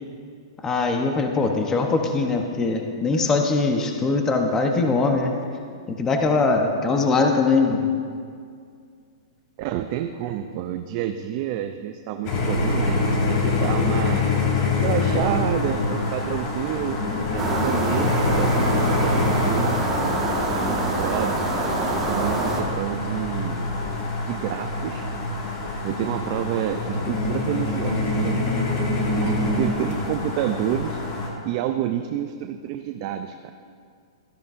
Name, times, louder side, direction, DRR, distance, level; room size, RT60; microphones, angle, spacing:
voice 1, 0.6-5.3 6.0-7.9 29.5-29.6, left 3 dB, 15° left, 3 dB, 0.9 m, -21 dB
voice 2, 9.6-14.2 14.8-17.0 17.3-20.2 20.5-21.4 21.8-23.7 24.2-25.1 25.8-28.4 29.0-31.0 31.4-33.5, right 11 dB, 40° right, 7 dB, 0.4 m, -29 dB
sound 1, 12.2-31.3, left 2 dB, 40° left, 1.9 m, -25 dB
sound 2, 17.4-22.6, right 2 dB, 20° right, 1.6 m, -25 dB
13.5 x 12.0 x 2.6 m, 2.2 s
hypercardioid pair, 135°, 3 cm